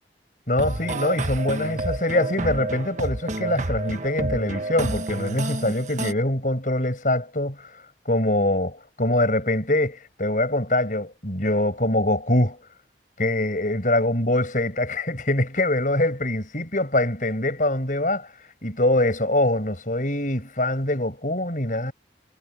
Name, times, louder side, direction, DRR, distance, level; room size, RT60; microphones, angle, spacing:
voice 1, 0.5-7.6 8.1-12.6 13.2-18.3 18.6-21.9, left 1 dB, 45° left, 7.0 m, -23 dB
sound 1, 0.6-6.1, right 2 dB, 45° right, 1.4 m, -29 dB
head